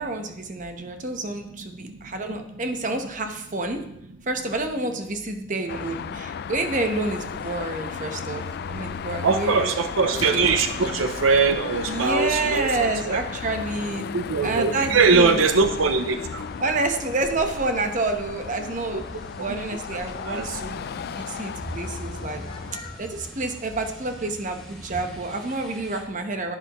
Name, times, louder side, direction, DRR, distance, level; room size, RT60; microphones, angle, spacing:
voice 1, 0.0-3.8 4.3-9.7 10.3-10.5 11.9-14.0 14.4-15.4 16.6-19.0 19.4-22.5 23.0-26.6, right 2 dB, 40° right, 5 dB, 1.0 m, -28 dB
Car passing by / Traffic noise roadway noise / Engine, 5.7-22.8, left 7 dB, 50° left, 0.3 m, -35 dB
sound 1, 7.1-23.3, left 1 dB, 25° left, 1.0 m, -45 dB
voice 2, 9.2-13.2 14.1-16.5 18.9-19.0 19.4-19.6 19.9-20.6, right 4 dB, 85° right, 8 dB, 0.6 m, -22 dB
sound 2, 14.7-26.0, equal, 5° left, 2.2 m, -44 dB
10.5 x 10.5 x 3.0 m, 0.80 s
head